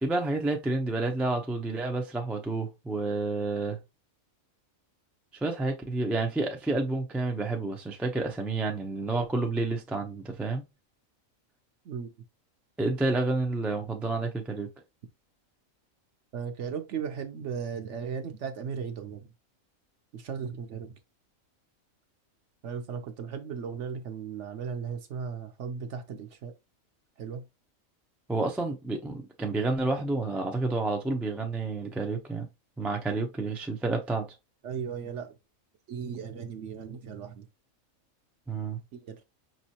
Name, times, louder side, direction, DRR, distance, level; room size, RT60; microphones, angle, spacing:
voice 1, 0.0-3.8 5.4-10.6 12.8-14.7 28.3-32.5 32.8-34.3 38.5-38.8, right 2 dB, ahead, 0.3 m, -29 dB
voice 2, 16.3-19.3 20.1-21.0 22.6-26.5 27.2-27.4 34.6-35.3 35.9-37.5 38.9-39.2, right 6 dB, 65° right, 1.0 m, -36 dB
5.4 x 3.0 x 2.8 m
omnidirectional pair, 1.4 m